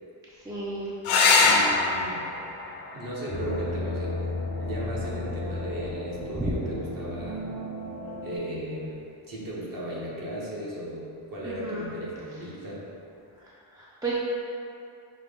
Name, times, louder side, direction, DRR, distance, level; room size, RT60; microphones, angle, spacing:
voice 1, 0.5-0.9 6.4-6.5 11.4-11.9 13.8-14.1, right 2 dB, 10° right, -7 dB, 0.3 m, -32 dB
sound 1, 1.0-6.1 8.0-8.6 12.0-12.2 12.5-12.6, left 3 dB, 75° left, 0.6 m, -26 dB
voice 2, 1.4-2.2 2.9-4.2 4.6-7.4 8.2-12.9, right 1 dB, 40° right, -5 dB, 1.0 m, -36 dB
sound 2, 3.3-8.4, left 2 dB, 85° right, 1.2 m, -34 dB
5.7 x 2.2 x 3.4 m, 2.7 s
wide cardioid pair, 120°, 50 cm